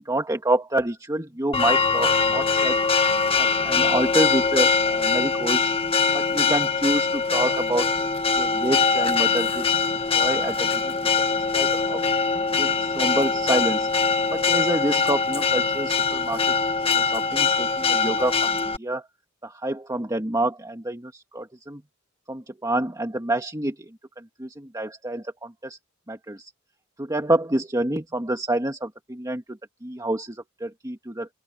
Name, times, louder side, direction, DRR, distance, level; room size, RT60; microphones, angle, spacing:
voice 1, 0.0-2.8 3.4-5.7 6.1-8.1 8.4-9.7 10.1-10.9 11.5-12.1 12.5-13.9 14.3-16.5 16.9-19.1 19.4-21.8 22.3-23.9 24.2-25.8 26.1-26.5 27.0-31.3, right 1 dB, 15° right, 1.8 m, -28 dB
Church bell, 1.5-18.8, left 5 dB, 30° left, 1.5 m, -22 dB
open air
head